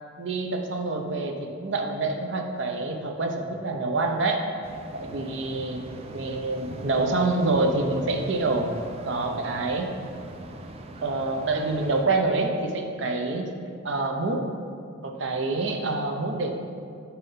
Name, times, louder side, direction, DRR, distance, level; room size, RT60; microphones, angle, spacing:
voice 1, 0.2-4.4 4.9-5.8 6.1-8.7 9.0-10.0 11.0-13.5 13.8-14.4 15.0-16.5, right 3 dB, 65° right, 3 dB, 0.6 m, -26 dB
sound 1, 4.6-12.1, right 2 dB, 30° right, 0.3 m, -41 dB
5.4 x 4.4 x 5.5 m, 2.4 s
head